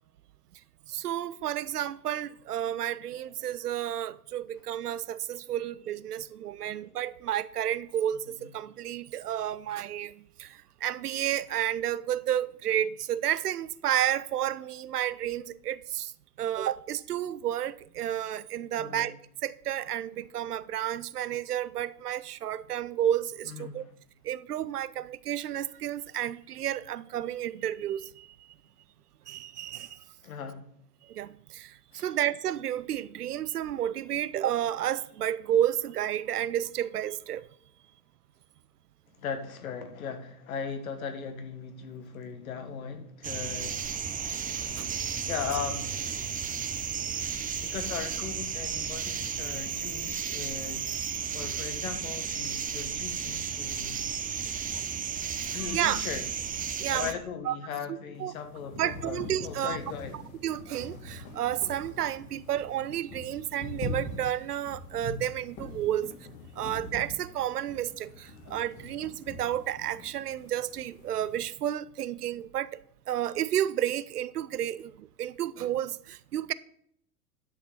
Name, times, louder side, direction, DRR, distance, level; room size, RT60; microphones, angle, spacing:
voice 1, 0.9-16.1 16.4-19.1 19.4-23.8 24.2-28.4 29.3-30.0 31.0-37.4 44.7-44.9 55.4-56.0 56.8-57.1 57.5-57.6 58.2-58.3 58.8-59.8 60.4-66.1 66.6-72.8 73.1-76.5, right 11 dB, 80° right, 0.6 m, -31 dB
voice 2, 18.8-19.1 23.5-23.9 30.2-30.6 31.9-32.1 39.1-43.9 45.3-46.1 47.6-50.9 51.3-54.0 55.5-56.2 56.9-60.3, left 7 dB, 65° left, 1.7 m, -38 dB
sound 1, 43.2-57.1, right 7 dB, 20° right, 0.9 m, -33 dB
sound 2, 58.1-71.4, left 1 dB, 45° left, 3.1 m, -43 dB
10.5 x 6.7 x 4.2 m
figure-of-eight pair, 90°, 46 cm